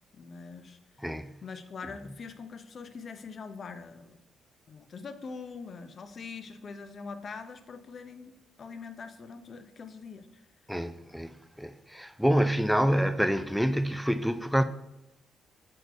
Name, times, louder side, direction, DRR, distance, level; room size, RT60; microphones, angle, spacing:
voice 1, 0.1-0.8 1.4-4.2 4.7-10.4, left 5 dB, 50° left, 0.6 m, -43 dB
voice 2, 1.0-1.3 10.7-14.6, equal, ahead, 0.4 m, -27 dB
6.4 x 4.4 x 4.6 m
cardioid pair, 90°, 0 cm